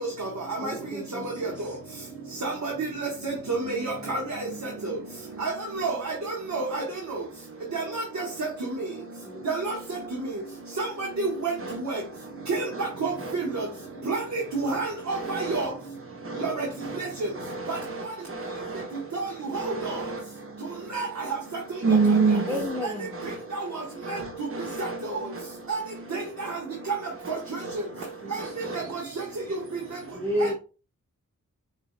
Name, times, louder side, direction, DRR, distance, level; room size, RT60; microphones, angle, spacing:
voice 1, 0.6-1.5 9.3-9.4 22.5-23.1 28.2-28.4 28.8-29.2 30.1-30.5, left 1 dB, 10° right, 1.4 m, -32 dB
voice 2, 2.4-4.2 5.4-5.5 5.8-6.0 6.5-6.8 7.7-8.2 9.4-9.7 10.8-10.9 11.2-11.5 11.9-12.0 12.5-12.6 13.0-13.6 14.1-15.7 16.4-16.7 17.0-17.1 17.7-17.8 19.1-19.3 19.5-19.6 20.9-21.1 25.7-25.8 26.1-26.2 27.3-27.4 28.3-28.4 30.4-30.5, right 3 dB, 60° right, 1.5 m, -28 dB
voice 3, 12.2-12.9 13.2-13.3 13.9-14.1 15.1-15.7 16.1-16.5 16.8-19.2 19.5-21.0 21.8-25.6 26.2-26.9 27.2-29.0 30.1-30.4, right 4 dB, 40° right, 1.2 m, -31 dB
6.4 x 3.3 x 2.2 m
cardioid pair, 55°, 33 cm